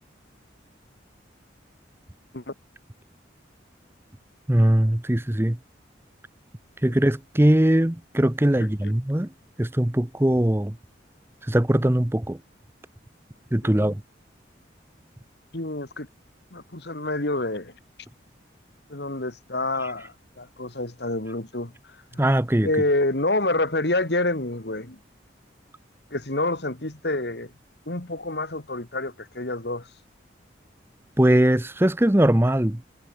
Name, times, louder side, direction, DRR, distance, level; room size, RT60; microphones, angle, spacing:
voice 1, 4.5-5.6 6.8-9.3 9.6-10.8 11.4-12.4 13.5-14.0 19.8-19.9 22.2-22.7 31.2-32.8, right 1 dB, 15° right, 0.7 m, -21 dB
voice 2, 15.5-16.1 16.5-17.7 18.9-21.7 22.1-22.3 22.6-25.0 26.1-27.5 27.9-29.9, left 2 dB, 60° left, 2.4 m, -27 dB
head